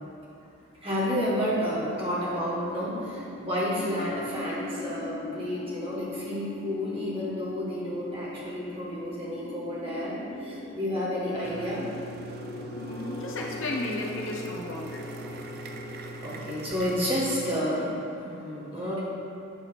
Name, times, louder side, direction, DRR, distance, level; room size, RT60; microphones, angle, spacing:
voice 1, 0.8-11.9 16.2-19.0, equal, 25° right, -7 dB, 1.6 m, -30 dB
sound 1, 0.9-17.8, left 3 dB, 25° left, 0.4 m, -41 dB
sound 2, 11.4-17.6, right 5 dB, 45° right, 0.4 m, -42 dB
voice 2, 12.8-15.1, left 2 dB, 60° left, -2 dB, 0.8 m, -34 dB
8.4 x 3.2 x 6.4 m, 2.6 s
head